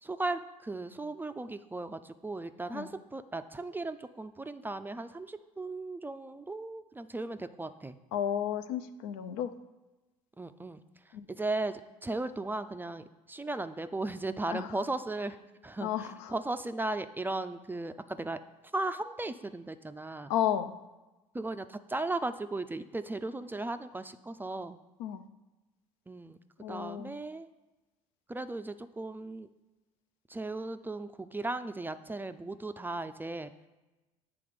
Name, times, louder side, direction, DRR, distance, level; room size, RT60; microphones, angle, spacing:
voice 1, 0.0-8.0 10.4-10.8 11.1-15.4 15.6-18.4 18.7-20.3 21.3-24.8 26.1-26.4 26.7-27.5 28.3-29.5 30.3-33.5, right 2 dB, 10° right, 10 dB, 0.3 m, -36 dB
voice 2, 8.1-9.5 11.1-11.3 14.5-14.7 15.8-16.3 20.3-20.7 25.0-25.2 26.6-27.1, left 10 dB, 80° left, 10 dB, 0.5 m, -32 dB
7.9 x 3.4 x 5.0 m, 1.1 s
hypercardioid pair, 70°, 17 cm